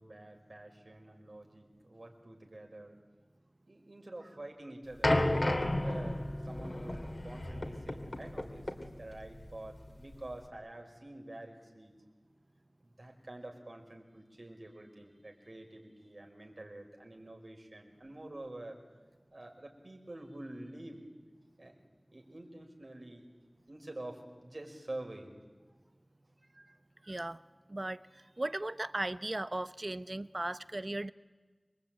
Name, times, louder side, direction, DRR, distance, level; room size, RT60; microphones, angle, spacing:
voice 1, 0.0-3.0 3.7-11.9 12.8-18.8 19.3-21.0 21.6-21.7 22.1-23.3 23.7-25.4, right 1 dB, 70° right, 2 dB, 5.4 m, -48 dB
sound 1, 5.0-10.4, left 1 dB, 60° left, 3.1 m, -33 dB
voice 2, 27.0-27.4 27.7-31.1, right 1 dB, 50° right, 13 dB, 0.9 m, -37 dB
27.0 x 23.5 x 9.2 m, 1.3 s
wide cardioid pair, 40°, 0 cm